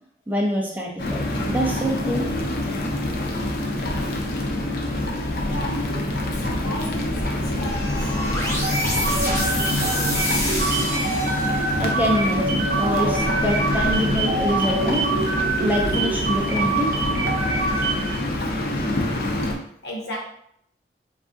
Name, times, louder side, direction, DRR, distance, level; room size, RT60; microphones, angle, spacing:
voice 1, 0.3-2.3 11.8-15.1 15.6-17.0, equal, 10° right, 0.3 m, -25 dB
sound 1, 1.0-19.6, left 1 dB, 55° left, 0.4 m, -26 dB
voice 2, 2.6-3.7 4.0-4.2 5.5-10.4 13.6-13.8 17.6-17.8 18.4-18.5 19.4-19.5 19.8-20.2, equal, 75° left, 0.8 m, -38 dB
sound 2, 7.6-11.9, left 1 dB, 15° left, 0.7 m, -28 dB
sound 3, 8.6-18.2, right 3 dB, 55° right, 0.6 m, -25 dB
3.5 x 2.3 x 2.5 m
head